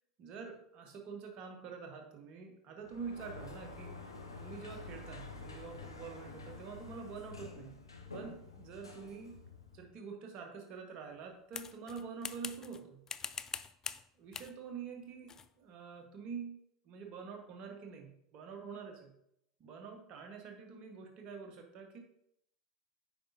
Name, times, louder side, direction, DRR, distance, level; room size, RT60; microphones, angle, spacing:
voice 1, 0.2-4.0 4.4-7.8 8.1-9.4 9.7-13.0 14.2-19.1 19.6-22.0, right 5 dB, 45° right, 4 dB, 1.4 m, -46 dB
Sliding door, 2.8-9.9, left 3 dB, 85° left, 0.9 m, -49 dB
sound 1, 11.5-12.8 13.1-14.0 14.3-14.6 15.3-15.5, left 6 dB, 25° left, 0.3 m, -43 dB
8.5 x 5.3 x 2.8 m, 0.75 s
figure-of-eight pair, 80°, 2 cm